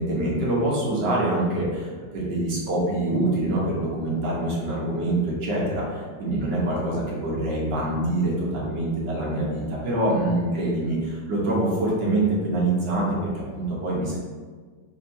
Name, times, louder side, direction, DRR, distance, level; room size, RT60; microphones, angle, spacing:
voice 1, 0.0-13.1 13.3-14.2, right 1 dB, 70° right, -5 dB, 1.6 m, -25 dB
5.8 x 2.8 x 2.6 m, 1.5 s
omnidirectional pair, 2.0 m